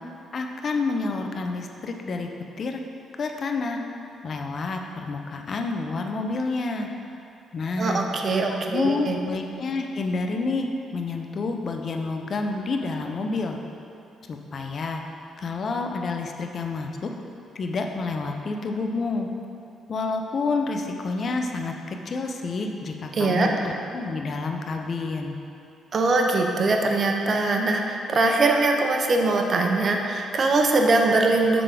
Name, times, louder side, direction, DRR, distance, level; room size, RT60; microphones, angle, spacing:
voice 1, 0.3-2.3 2.6-2.8 3.2-3.8 4.2-6.9 7.5-8.0 8.5-10.7 10.9-13.6 14.3-15.0 15.4-17.1 17.5-19.3 19.9-25.3, left 3 dB, 50° left, 3 dB, 0.6 m, -29 dB
voice 2, 7.8-9.2 23.1-23.5 25.9-31.6, right 3 dB, 45° right, 2 dB, 0.7 m, -22 dB
6.8 x 3.7 x 5.0 m, 2.7 s
cardioid pair, 90°, 0 cm